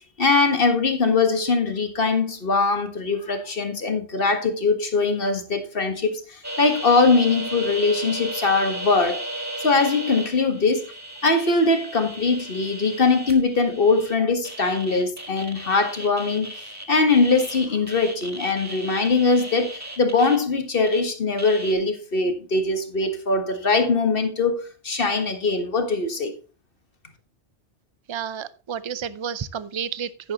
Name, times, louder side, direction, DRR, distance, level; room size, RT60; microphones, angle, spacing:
voice 1, 0.2-9.2 9.6-10.9 11.2-16.5 16.9-26.3, left 3 dB, 55° left, 1.6 m, -21 dB
sound 1, 6.4-21.0 21.4-21.7, right 1 dB, 15° right, 1.5 m, -35 dB
voice 2, 28.1-30.3, right 8 dB, 40° right, 0.4 m, -31 dB
10.5 x 10.5 x 2.9 m
omnidirectional pair, 1.2 m